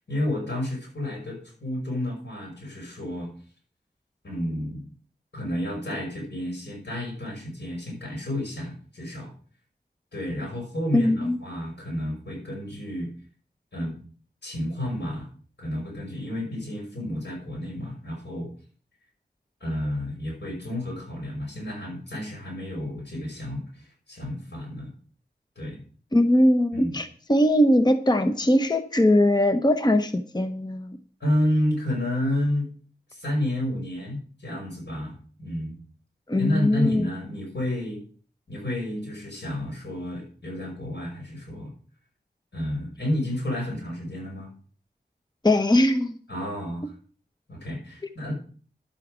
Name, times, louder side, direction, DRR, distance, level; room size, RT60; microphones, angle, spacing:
voice 1, 0.1-3.3 4.2-4.8 5.3-9.3 10.1-13.1 13.7-14.0 14.4-15.3 15.6-18.5 19.6-23.6 24.1-24.9 25.6-25.8 26.7-27.0 31.2-32.7 33.1-35.8 36.4-38.0 38.5-41.7 42.5-44.5 46.3-46.9 47.5-48.3, left 1 dB, 90° left, 0 dB, 5.7 m, -30 dB
voice 2, 10.9-11.4 26.1-30.9 36.3-37.1 45.4-46.1, left 1 dB, 25° left, 8 dB, 0.9 m, -21 dB
11.5 x 8.5 x 5.0 m, 0.43 s
wide cardioid pair, 60°, 18 cm